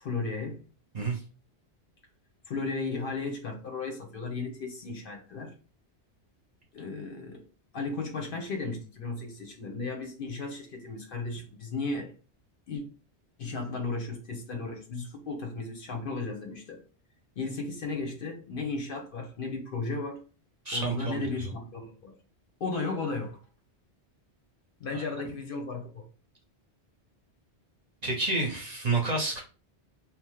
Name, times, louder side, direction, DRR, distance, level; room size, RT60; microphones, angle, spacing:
voice 1, 0.0-0.6 2.5-5.5 6.7-7.4 7.7-12.1 12.7-12.8 13.4-16.8 17.4-20.2 20.7-22.1 22.6-23.4 24.8-26.0, left 3 dB, 60° left, 0.7 m, -35 dB
voice 2, 20.6-21.5 24.9-25.0 28.0-29.4, right 3 dB, 45° right, 0.7 m, -29 dB
2.8 x 2.0 x 3.0 m
omnidirectional pair, 1.2 m